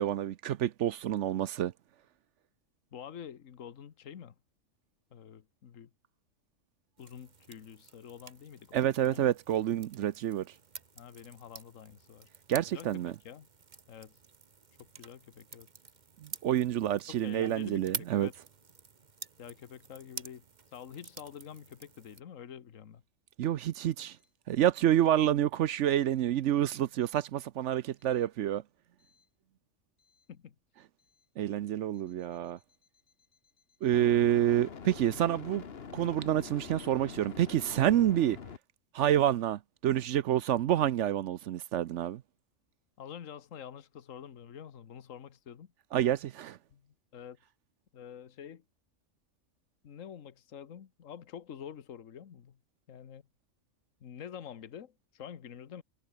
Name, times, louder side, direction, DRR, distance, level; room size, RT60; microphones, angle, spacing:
voice 1, 0.0-1.7 8.7-10.5 12.5-13.1 16.2-18.3 23.4-24.2 24.5-28.6 31.4-32.6 33.8-35.6 35.9-38.4 38.9-42.2 45.9-46.6, right 11 dB, 65° right, 0.9 m, -28 dB
voice 2, 2.9-4.3 5.1-5.9 7.0-8.8 9.1-9.3 10.9-12.3 12.5-13.5 13.9-14.2 14.8-15.7 17.1-17.9 18.1-18.3 19.4-23.0 30.3-30.5 33.9-34.2 43.0-45.7 46.7-47.4 47.9-48.6 49.8-52.6 52.9-53.2 54.0-55.8, left 8 dB, 65° left, 1.5 m, -47 dB
sound 1, 7.0-22.2, right 5 dB, 35° right, 1.1 m, -48 dB
sound 2, 29.1-29.2 33.9-38.6, left 6 dB, 45° left, 1.4 m, -45 dB
omnidirectional pair, 1.4 m